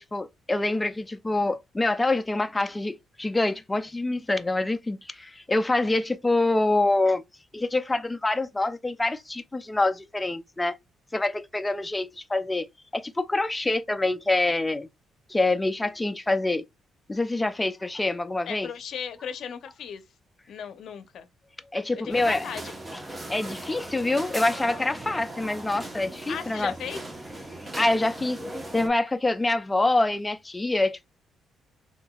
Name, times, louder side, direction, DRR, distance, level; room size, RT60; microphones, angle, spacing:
voice 1, 0.0-7.2 7.5-10.8 11.1-12.7 12.9-14.9 15.3-16.6 17.1-18.7 21.7-22.5 23.3-26.7 27.6-28.4 28.7-31.1, left 2 dB, 15° left, 0.4 m, -26 dB
voice 2, 18.5-20.0 20.5-21.3 22.0-22.7 26.3-27.0, left 8 dB, 70° left, 0.6 m, -36 dB
sound 1, 22.1-28.9, right 1 dB, 20° right, 0.9 m, -38 dB
3.6 x 2.6 x 2.3 m
cardioid pair, 90°, 0 cm